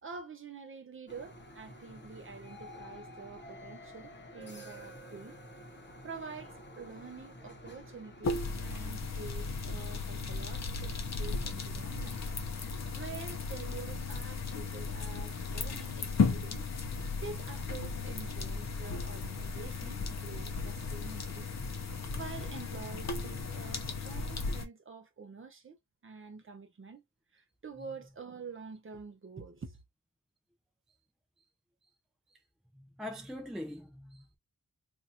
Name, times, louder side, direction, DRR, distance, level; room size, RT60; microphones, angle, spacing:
voice 1, 0.0-5.4 6.0-12.2 12.6-12.7 12.9-16.6 17.1-21.5 22.1-25.8 26.0-27.0 27.3-29.8, right 5 dB, 40° right, 0.8 m, -47 dB
sound 1, 1.1-8.5, equal, 35° left, 1.0 m, -50 dB
sound 2, 8.2-24.7, left 4 dB, 55° left, 0.8 m, -35 dB
voice 2, 32.7-34.4, left 1 dB, ahead, 0.3 m, -42 dB
2.7 x 2.5 x 4.2 m
wide cardioid pair, 175°, 33 cm